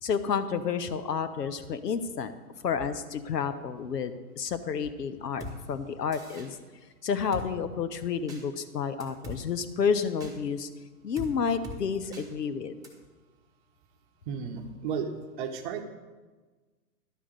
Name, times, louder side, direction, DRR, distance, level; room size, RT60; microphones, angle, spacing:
voice 1, 0.0-2.3 2.6-6.6 7.0-10.7 11.0-12.8, left 6 dB, 85° left, 12 dB, 0.9 m, -30 dB
Drum kit, 5.4-5.6 6.1-6.5 7.3-7.5 8.3-8.4 9.0-9.4 10.2-10.3 11.2-11.3 11.6-11.8 12.1-12.3 12.8-12.9, left 1 dB, 5° right, 1.3 m, -40 dB
voice 2, 14.3-15.1 15.4-15.8, right 7 dB, 35° right, 6 dB, 0.9 m, -33 dB
11.0 x 5.0 x 6.5 m, 1.3 s
hypercardioid pair, 130°, 47 cm